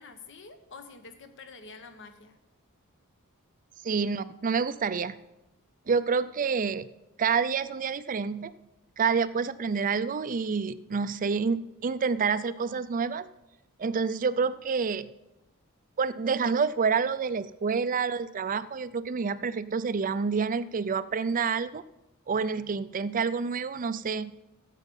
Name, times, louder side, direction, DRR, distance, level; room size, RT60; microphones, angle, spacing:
voice 1, 0.0-2.4, left 4 dB, 55° left, 8 dB, 1.1 m, -48 dB
voice 2, 3.8-5.2 5.9-6.9 7.2-8.5 9.0-13.3 13.8-15.1 16.0-21.8 22.3-24.3, right 5 dB, 35° right, 14 dB, 0.4 m, -28 dB
13.5 x 8.4 x 5.5 m, 0.96 s
head